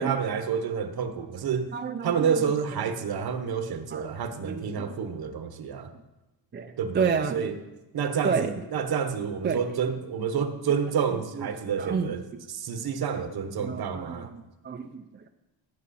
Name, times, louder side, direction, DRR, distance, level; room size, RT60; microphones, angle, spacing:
voice 1, 0.0-1.7 2.0-5.9 6.8-7.6 7.9-12.2 12.5-14.3, right 7 dB, 50° right, 9 dB, 1.1 m, -29 dB
voice 2, 1.7-2.3 2.8-3.2 3.9-4.1 4.4-5.0 6.5-7.5 8.2-8.5 9.4-9.6 11.4-11.5 11.8-12.1 13.6-15.3, right 5 dB, 25° right, 6 dB, 0.5 m, -30 dB
17.0 x 8.7 x 4.2 m, 1.0 s
cardioid pair, 150°, 46 cm